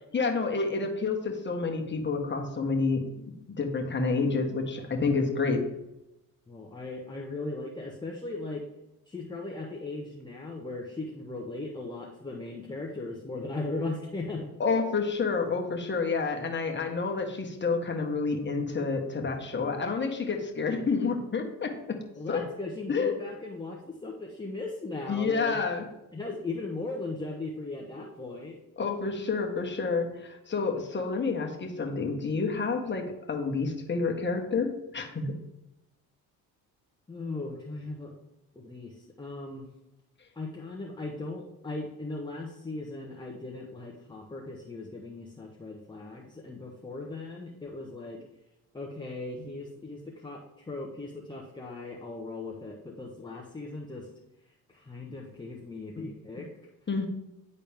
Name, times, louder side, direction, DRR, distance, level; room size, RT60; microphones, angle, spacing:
voice 1, 0.1-3.2 3.6-5.6 14.6-22.0 22.3-22.4 22.9-23.2 25.1-25.8 28.8-35.3 49.4-49.5 56.0-56.1 56.9-57.1, left 4 dB, 30° left, 3 dB, 1.5 m, -29 dB
voice 2, 6.5-8.7 9.1-14.5 22.2-25.6 26.1-28.6 37.1-38.1 38.5-39.7 40.3-48.2 48.7-54.1 54.5-56.5, left 2 dB, 10° left, -1 dB, 1.1 m, -38 dB
10.0 x 4.1 x 3.5 m, 0.90 s
cardioid pair, 85°, 37 cm